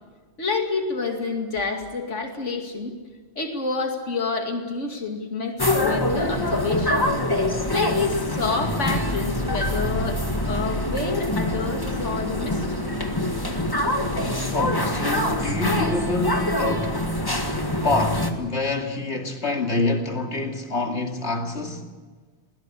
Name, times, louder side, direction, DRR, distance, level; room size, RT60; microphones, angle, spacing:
voice 1, 0.4-2.9 3.4-6.9 7.7-10.2 10.5-12.9 14.8-14.9, left 4 dB, 85° left, 2.7 m, -28 dB
sound 1, 5.6-18.3, left 1 dB, 20° left, 1.9 m, -25 dB
voice 2, 14.5-17.0 17.8-21.9, left 3 dB, 65° left, 2.8 m, -26 dB
21.5 x 17.5 x 9.9 m
omnidirectional pair, 1.2 m